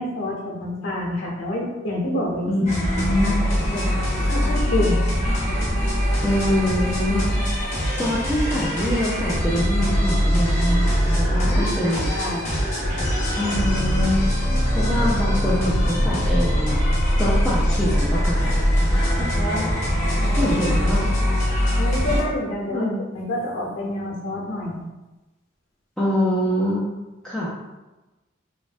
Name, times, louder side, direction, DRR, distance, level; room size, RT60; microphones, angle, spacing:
voice 1, 0.0-2.5 3.1-3.3 3.7-3.9 4.2-5.0 11.4-12.4 19.3-19.7 20.2-20.7 21.8-24.8, left 1 dB, 90° left, -4 dB, 0.9 m, -28 dB
voice 2, 2.5-3.4 6.2-7.3 7.9-12.1 13.4-14.3 14.7-16.8 17.2-18.4 18.9-19.5 20.4-21.0 22.7-23.0 26.0-26.9 27.2-27.5, left 1 dB, 5° left, -9 dB, 0.3 m, -24 dB
sound 1, 2.7-22.2, equal, 35° left, 0.8 m, -22 dB
3.2 x 2.1 x 2.4 m, 1.1 s
head